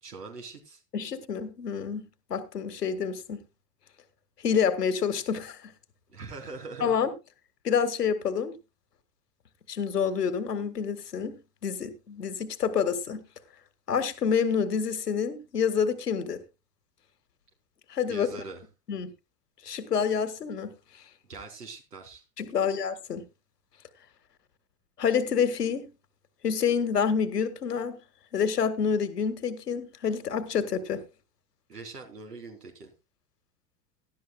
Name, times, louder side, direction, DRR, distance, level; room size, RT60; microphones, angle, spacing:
voice 1, 0.0-0.8 6.1-7.0 18.1-18.6 21.2-22.2 31.7-32.9, right 3 dB, 75° right, 3.4 m, -42 dB
voice 2, 0.9-3.4 4.4-5.6 6.8-7.1 7.6-8.5 9.7-13.2 13.9-16.4 17.9-18.3 18.9-19.1 19.6-20.7 22.4-23.2 25.0-25.9 26.4-28.0 28.3-31.0, left 7 dB, 75° left, 1.8 m, -28 dB
17.5 x 12.5 x 2.3 m
figure-of-eight pair, 80°, 48 cm